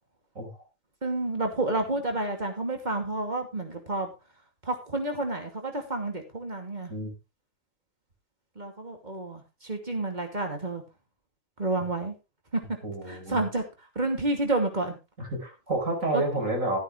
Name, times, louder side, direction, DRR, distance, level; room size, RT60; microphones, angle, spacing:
voice 1, 1.0-4.1 4.6-6.9 8.6-10.8 11.6-12.2 12.5-12.6 13.0-13.6 14.0-15.0 16.1-16.2, right 2 dB, 35° right, 4 dB, 2.7 m, -30 dB
voice 2, 12.8-13.4 15.2-16.8, right 2 dB, 85° right, 1 dB, 5.2 m, -30 dB
14.0 x 9.5 x 3.3 m, 0.27 s
omnidirectional pair, 1.3 m